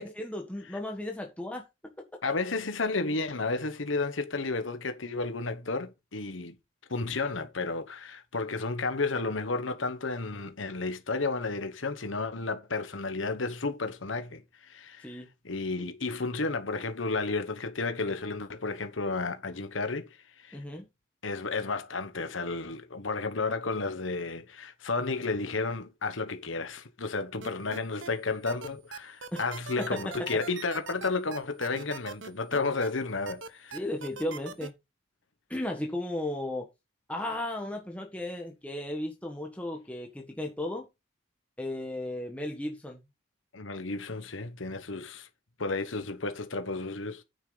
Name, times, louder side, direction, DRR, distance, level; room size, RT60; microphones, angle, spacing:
voice 1, 0.0-1.7 15.0-15.3 20.5-20.9 29.3-29.4 29.8-30.4 33.7-34.7 35.5-36.7 37.1-40.9 41.6-43.0, left 1 dB, 5° left, 1.7 m, -35 dB
voice 2, 2.2-6.5 6.9-20.1 20.4-20.6 21.2-33.8 43.5-45.3 45.6-47.2, left 3 dB, 85° left, 1.3 m, -32 dB
sound 1, 27.4-28.1 28.5-32.9 33.3-34.7, right 5 dB, 75° right, 1.1 m, -41 dB
9.5 x 8.3 x 4.1 m
head